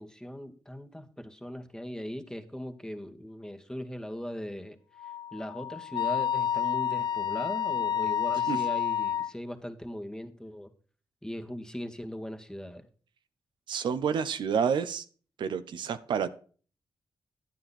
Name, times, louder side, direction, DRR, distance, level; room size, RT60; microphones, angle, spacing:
voice 1, 0.0-4.8 5.0-10.7 11.2-12.9, equal, 10° left, 5 dB, 1.8 m, -39 dB
Wind instrument woodwind instrument, 5.0-9.3, left 9 dB, 65° left, 0.8 m, -29 dB
voice 2, 13.7-15.1 15.4-16.3, right 7 dB, 80° right, 11 dB, 0.7 m, -29 dB
9.8 x 9.3 x 4.2 m, 0.40 s
cardioid pair, 55°, 8 cm